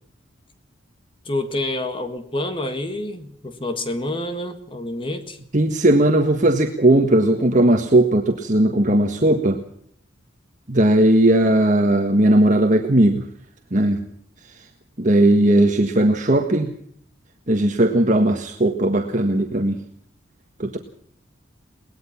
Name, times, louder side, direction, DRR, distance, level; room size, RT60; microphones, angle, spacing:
voice 1, 1.2-5.4, left 1 dB, 25° left, 8 dB, 1.8 m, -28 dB
voice 2, 5.5-9.6 10.7-13.2 13.7-14.0 15.0-16.7 17.5-19.8 20.6-20.8, right 1 dB, 40° right, 4 dB, 1.6 m, -17 dB
22.5 x 19.5 x 5.9 m, 0.66 s
head